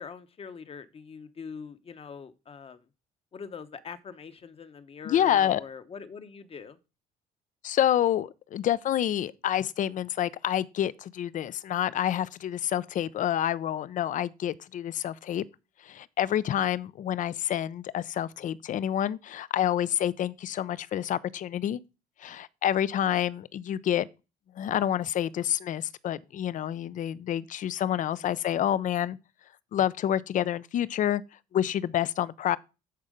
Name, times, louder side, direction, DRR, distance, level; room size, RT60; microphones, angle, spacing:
voice 1, 0.0-2.9 3.3-6.8 28.2-28.3, left 6 dB, 35° left, 1.0 m, -43 dB
voice 2, 5.1-5.6 7.6-15.4 15.8-21.8 22.2-24.1 24.6-29.2 29.7-31.2 31.5-32.6, left 11 dB, 50° left, 0.5 m, -28 dB
10.5 x 4.4 x 5.0 m
cardioid pair, 110°, 17 cm